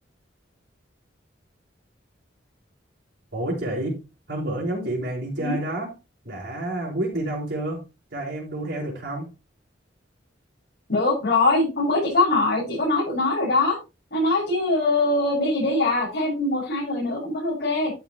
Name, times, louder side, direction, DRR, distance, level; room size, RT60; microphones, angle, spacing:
voice 1, 3.3-4.0 4.3-5.9 6.2-7.9 8.1-9.3, right 1 dB, 60° right, 5.2 m, -29 dB
voice 2, 10.9-13.8 14.1-17.9, left 2 dB, 60° left, 6.8 m, -22 dB
12.0 x 7.5 x 3.1 m
head